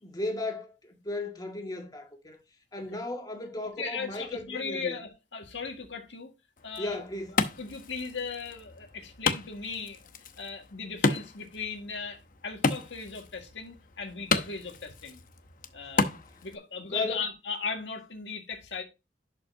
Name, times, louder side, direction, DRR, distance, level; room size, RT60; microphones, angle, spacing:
voice 1, 0.0-2.4 2.7-4.9 6.8-7.4 16.3-16.5 16.8-17.2, left 2 dB, 20° left, 1.8 m, -36 dB
voice 2, 3.8-6.3 6.6-7.0 7.6-10.0 10.4-15.2 15.7-16.1 16.4-18.8, left 5 dB, 90° left, 1.9 m, -37 dB
Wood, 6.6-16.6, left 4 dB, 50° left, 0.9 m, -33 dB
11.5 x 5.4 x 2.7 m
head